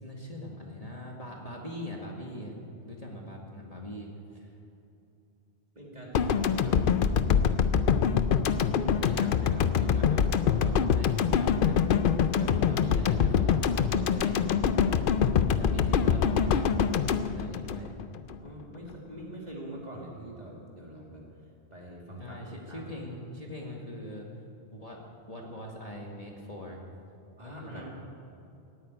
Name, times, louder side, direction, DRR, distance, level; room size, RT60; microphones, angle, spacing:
voice 1, 0.0-4.6 9.0-11.8 12.4-15.0 15.6-16.9 17.2-17.9 22.2-24.3 24.7-26.8 27.4-27.8, equal, 35° left, -1 dB, 2.0 m, -41 dB
voice 2, 5.7-8.2 18.4-21.2 21.7-22.9 27.4-27.9, right 1 dB, 40° right, -3 dB, 2.9 m, -43 dB
sound 1, 6.1-18.3, left 7 dB, 55° left, 0.7 m, -25 dB
15.5 x 9.1 x 9.5 m, 2.8 s
omnidirectional pair, 1.1 m